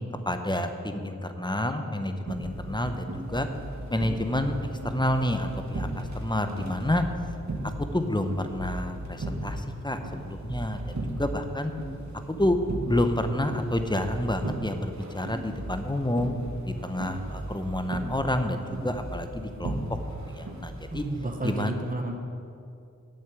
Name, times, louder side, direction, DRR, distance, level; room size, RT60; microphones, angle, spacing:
voice 1, 0.3-3.5 3.9-4.6 4.8-7.0 7.6-10.0 10.2-10.8 11.2-11.7 12.3-16.3 16.7-19.8 20.3-21.0 21.4-21.8, left 1 dB, 15° left, 7 dB, 0.8 m, -29 dB
sound 1, 2.3-21.2, right 1 dB, 60° right, 1.5 m, -36 dB
voice 2, 20.9-22.1, right 2 dB, 25° right, 3 dB, 1.1 m, -31 dB
9.0 x 7.3 x 8.0 m, 2.5 s
wide cardioid pair, 75°, 32 cm